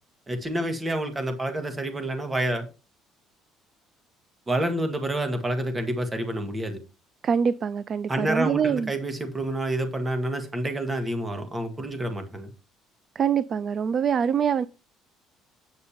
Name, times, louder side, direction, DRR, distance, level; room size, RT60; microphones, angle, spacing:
voice 1, 0.3-2.7 4.5-6.8 8.1-12.5, right 1 dB, 15° right, 1.6 m, -28 dB
voice 2, 7.2-8.9 13.2-14.7, right 7 dB, 35° right, 0.3 m, -24 dB
8.6 x 6.6 x 4.4 m
cardioid pair, 160°, 0 cm